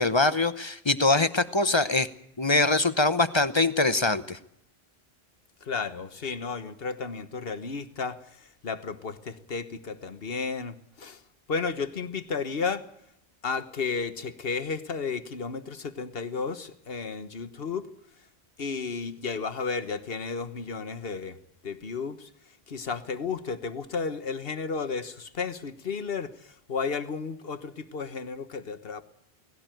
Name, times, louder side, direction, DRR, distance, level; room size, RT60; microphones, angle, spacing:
voice 1, 0.0-2.1 2.4-4.4, left 2 dB, 30° left, 13 dB, 0.8 m, -23 dB
voice 2, 5.6-11.2 11.5-12.9 13.4-17.9 18.6-21.4 21.6-22.3 22.7-29.0, left 5 dB, 65° left, 11 dB, 1.5 m, -33 dB
19.0 x 17.0 x 9.1 m, 0.76 s
omnidirectional pair, 1.1 m